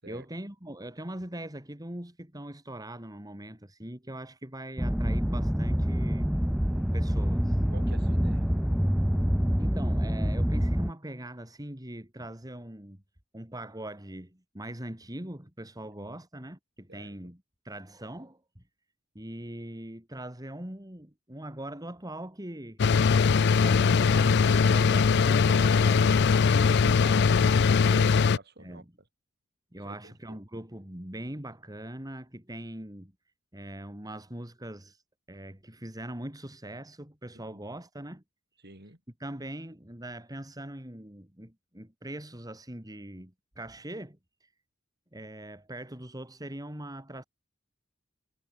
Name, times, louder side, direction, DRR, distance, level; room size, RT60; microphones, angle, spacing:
voice 1, 0.1-6.3 6.9-7.6 9.6-13.0 13.3-18.6 19.1-22.8 23.5-27.3 28.6-28.9 29.7-33.1 33.5-35.0 35.3-38.2 39.2-44.5 45.1-47.2, right 1 dB, 20° right, 3.0 m, -41 dB
sound 1, 4.8-10.9, equal, 5° right, 0.6 m, -26 dB
voice 2, 7.7-8.6 15.8-16.2 16.9-17.3 27.9-29.1 29.8-30.4 37.3-37.7 38.6-39.0, right 2 dB, 55° right, 7.9 m, -50 dB
sound 2, 22.8-28.4, left 5 dB, 55° left, 0.4 m, -21 dB
head